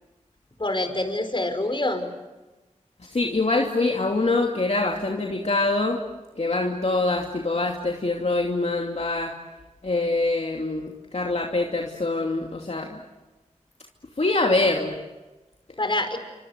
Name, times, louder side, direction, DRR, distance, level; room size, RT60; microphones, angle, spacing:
voice 1, 0.6-2.1 15.8-16.2, left 2 dB, 40° left, 7 dB, 5.4 m, -26 dB
voice 2, 3.1-6.0 6.4-9.3 9.8-13.0 14.2-15.0, left 2 dB, 55° left, 1 dB, 2.8 m, -24 dB
28.0 x 26.5 x 8.1 m, 1.1 s
cardioid pair, 40°, 13 cm